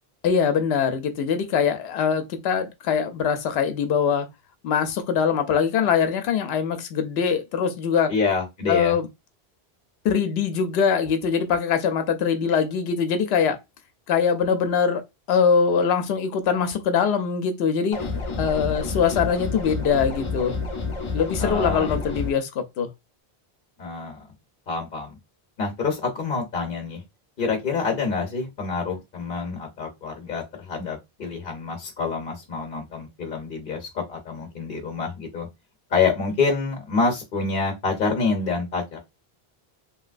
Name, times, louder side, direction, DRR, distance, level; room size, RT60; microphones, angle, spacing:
voice 1, 0.2-4.3 4.6-8.1 8.7-9.1 10.0-13.6 14.1-15.0 15.3-18.0 18.4-20.5 21.1-22.9, left 6 dB, 80° left, 0.8 m, -22 dB
voice 2, 8.1-9.0 21.4-22.0 23.8-24.2 24.7-25.2 25.6-27.0 27.4-35.5 35.9-39.0, left 4 dB, 60° left, 0.9 m, -27 dB
sound 1, 17.9-22.3, left 4 dB, 35° left, 0.7 m, -29 dB
3.0 x 2.8 x 2.4 m
omnidirectional pair, 1.0 m